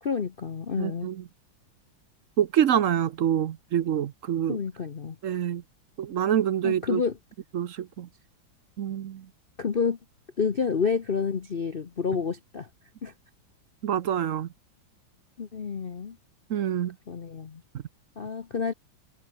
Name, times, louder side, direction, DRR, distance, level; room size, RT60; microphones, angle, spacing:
voice 1, 0.0-1.1 4.5-5.2 6.6-7.2 9.6-10.0 10.4-12.7 13.0-13.1 15.4-16.2 17.1-17.6 18.2-18.7, left 5 dB, 40° left, 0.8 m, -29 dB
voice 2, 0.8-1.2 2.4-4.6 5.2-5.6 6.0-7.0 7.5-8.1 8.8-9.2 13.8-14.5 16.5-16.9, right 10 dB, 60° right, 0.8 m, -26 dB
omnidirectional pair, 2.1 m